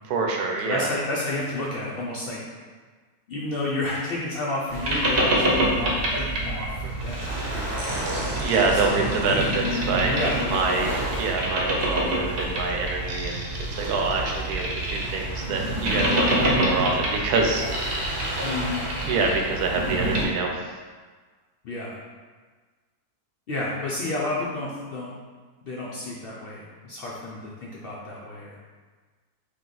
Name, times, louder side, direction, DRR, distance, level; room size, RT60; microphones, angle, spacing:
voice 1, 0.0-0.9 8.4-10.1 10.5-13.5 13.8-18.1 19.1-20.5, right 4 dB, 80° right, 1 dB, 1.1 m, -26 dB
voice 2, 0.6-2.4 3.3-8.2 8.7-9.5 10.1-10.9 18.4-18.9 21.6-22.0 23.5-25.1 25.6-28.6, left 2 dB, 75° left, -5 dB, 0.5 m, -31 dB
Boat Water vehicle, 4.7-20.3, right 1 dB, 50° right, 0.8 m, -26 dB
3.5 x 2.8 x 3.8 m, 1.4 s
omnidirectional pair, 1.6 m